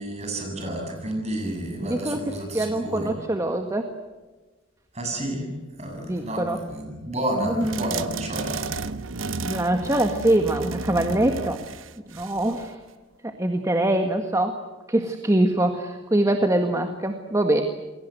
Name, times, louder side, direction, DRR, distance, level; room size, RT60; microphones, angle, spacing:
voice 1, 0.0-3.1 4.9-5.5 5.8-8.7, right 1 dB, 35° right, 3 dB, 7.9 m, -30 dB
voice 2, 1.8-3.9 6.0-6.6 7.4-7.8 9.4-11.6 12.1-12.8 13.2-14.6 14.9-17.6, right 1 dB, 15° right, 5 dB, 1.7 m, -24 dB
sound 1, 7.6-12.7, right 4 dB, 85° right, 1.0 m, -33 dB
28.5 x 22.0 x 8.0 m, 1.2 s
head